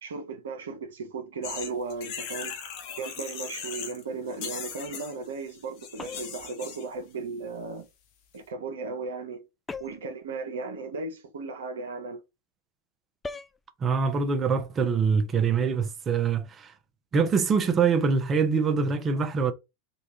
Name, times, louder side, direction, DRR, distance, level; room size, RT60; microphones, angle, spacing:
voice 1, 0.0-2.6 3.0-7.9 8.3-9.5 9.8-12.2, right 4 dB, 75° right, 0.8 m, -36 dB
sound 1, 1.4-4.0 4.3-6.9, left 7 dB, 55° left, 0.8 m, -38 dB
sound 2, 6.0-6.5 9.7-10.2 13.2-13.6, left 4 dB, 15° left, 0.4 m, -38 dB
voice 2, 13.8-16.7 17.1-19.5, right 5 dB, 30° right, 0.7 m, -24 dB
3.8 x 2.4 x 2.8 m
hypercardioid pair, 90°, 0 cm